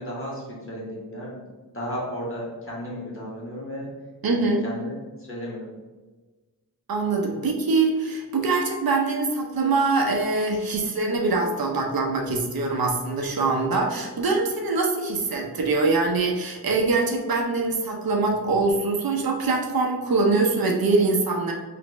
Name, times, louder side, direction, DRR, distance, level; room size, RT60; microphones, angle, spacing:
voice 1, 0.0-1.4 1.7-3.9 4.4-4.9 5.2-5.7 13.8-13.9, equal, 35° left, -5 dB, 1.3 m, -34 dB
voice 2, 4.2-4.6 6.9-21.5, right 3 dB, 65° right, 1 dB, 0.6 m, -23 dB
3.0 x 2.6 x 3.2 m, 1.3 s
cardioid pair, 60°, 39 cm